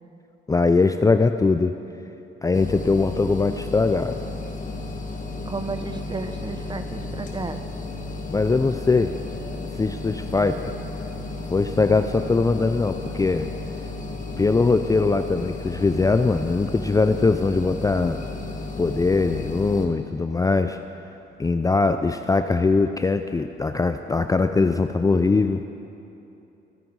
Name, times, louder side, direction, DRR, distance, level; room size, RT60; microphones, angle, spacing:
voice 1, 0.5-1.8 2.4-4.2 8.3-9.2 9.8-10.7 11.5-13.5 14.4-18.2 18.8-20.8 21.4-25.6, left 3 dB, 15° left, 8 dB, 0.4 m, -21 dB
sound 1, 2.5-19.9, left 2 dB, 40° left, 1.7 m, -33 dB
voice 2, 5.5-7.6, right 3 dB, 20° right, 9 dB, 0.9 m, -32 dB
23.5 x 9.2 x 4.7 m, 2.9 s
cardioid pair, 90°, 20 cm